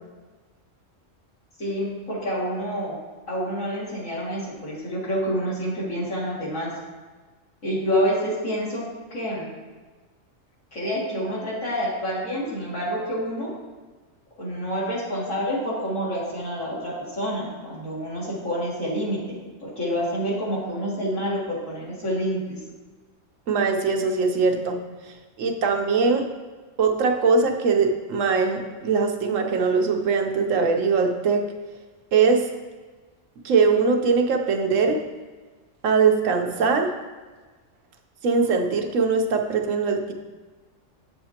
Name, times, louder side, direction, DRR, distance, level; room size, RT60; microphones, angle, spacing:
voice 1, 1.6-3.0 3.3-6.7 7.6-8.8 9.1-9.5 10.7-13.5 14.4-19.2 19.6-22.6, equal, 85° left, -7 dB, 2.8 m, -28 dB
voice 2, 23.5-24.8 25.4-26.2 26.8-31.4 32.1-32.4 33.4-35.0 35.8-36.9 38.2-40.1, right 4 dB, 80° right, 3 dB, 1.1 m, -21 dB
8.4 x 6.7 x 2.8 m, 1.3 s
omnidirectional pair, 1.3 m